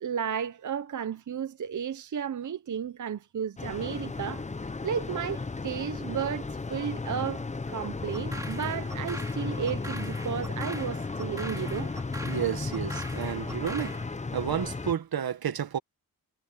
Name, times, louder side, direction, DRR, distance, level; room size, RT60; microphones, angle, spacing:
voice 1, 0.0-4.5 4.8-11.9, right 8 dB, 50° right, 0.7 m, -33 dB
sound 1, 3.6-14.9, left 3 dB, 20° left, 0.6 m, -34 dB
sound 2, 8.1-14.1, right 1 dB, 10° right, 2.4 m, -43 dB
voice 2, 12.3-14.0 14.3-15.8, right 9 dB, 70° right, 1.2 m, -31 dB
wide cardioid pair, 170°, 38 cm